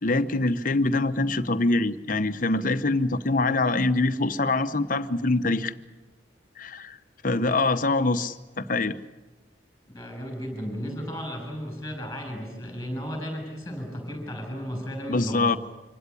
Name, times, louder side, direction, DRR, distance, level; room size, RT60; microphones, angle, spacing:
voice 1, 0.0-5.7 6.6-7.0 7.2-9.0 15.1-15.6, left 2 dB, 45° left, 10 dB, 0.9 m, -24 dB
voice 2, 9.9-15.6, equal, 15° left, 4 dB, 6.8 m, -34 dB
25.5 x 16.5 x 9.9 m, 1.2 s
head